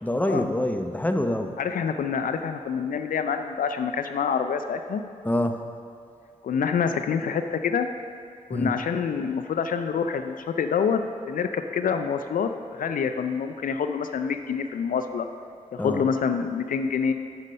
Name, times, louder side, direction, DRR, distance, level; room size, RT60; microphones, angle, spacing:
voice 1, 0.0-1.6 5.2-5.6 8.5-8.7 15.8-16.0, left 1 dB, 10° left, 6 dB, 0.7 m, -25 dB
voice 2, 1.6-5.0 6.4-7.9 8.5-11.0 11.3-15.3 15.7-17.1, left 6 dB, 80° left, 8 dB, 0.4 m, -26 dB
8.1 x 6.4 x 5.5 m, 2.3 s
cardioid pair, 40°, 14 cm